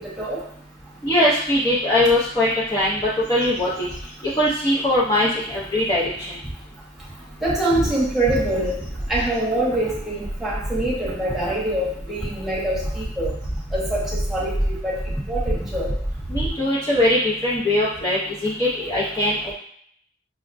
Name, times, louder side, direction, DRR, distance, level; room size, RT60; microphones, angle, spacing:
voice 1, 1.0-3.0 3.3-3.9 4.4-6.0 16.3-19.5, left 1 dB, 20° left, -8 dB, 0.5 m, -21 dB
sound 1, 2.0-2.1 2.6-2.9 3.2-4.7 5.3-5.4 7.1-16.5, right 1 dB, 40° left, 1.0 m, -30 dB
voice 2, 7.4-8.8 9.1-13.3 13.7-15.0 15.3-15.9, right 1 dB, ahead, -7 dB, 1.0 m, -24 dB
5.9 x 2.1 x 2.5 m, 0.64 s
head